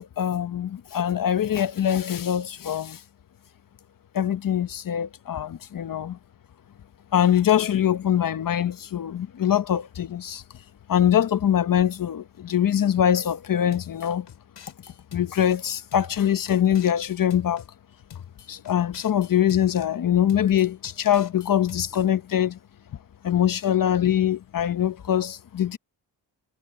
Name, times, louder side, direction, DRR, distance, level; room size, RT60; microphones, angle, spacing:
voice 1, 0.0-3.0 4.1-6.2 7.1-10.4 10.9-14.3 15.1-17.6 18.5-22.6 23.2-25.8, left 10 dB, 50° left, 1.0 m, -23 dB
sound 1, 13.7-15.5 15.9-17.7 18.1-19.9 20.3-22.1, left 9 dB, 75° left, 6.7 m, -44 dB
cardioid pair, 120°, 43 cm